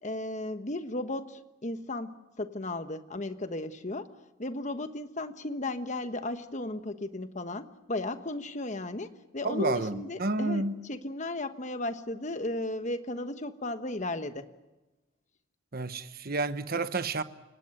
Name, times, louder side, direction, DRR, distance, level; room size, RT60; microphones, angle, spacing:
voice 1, 0.0-14.5, left 2 dB, 35° left, 1.2 m, -35 dB
voice 2, 9.4-10.8 15.7-17.2, right 2 dB, 50° right, 1.1 m, -30 dB
28.5 x 17.5 x 7.9 m
head